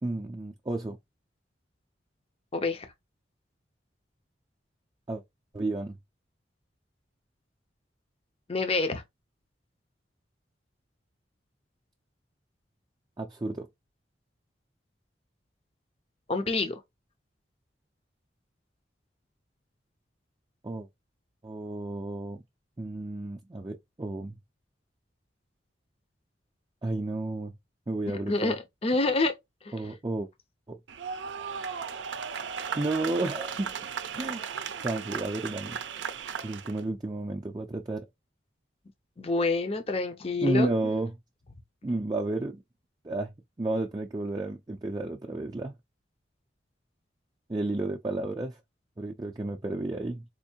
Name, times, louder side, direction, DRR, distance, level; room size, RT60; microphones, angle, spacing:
voice 1, 0.0-1.0 5.1-5.2 5.5-6.0 13.2-13.7 20.6-20.9 21.4-22.4 22.8-24.4 26.8-27.5 27.9-28.6 29.7-30.3 30.7-30.8 32.8-33.7 34.1-34.4 34.8-35.8 36.4-38.0 40.4-41.1 41.8-42.6 43.0-43.3 43.6-45.8 47.5-48.6 49.0-50.2, right 2 dB, 20° right, 0.4 m, -32 dB
voice 2, 2.5-2.9 8.5-9.0 16.3-16.8 28.3-29.3 39.2-40.7, left 3 dB, 30° left, 0.5 m, -27 dB
sound 1, 30.9-36.8, right 6 dB, 80° right, 0.5 m, -36 dB
4.4 x 2.5 x 2.7 m
head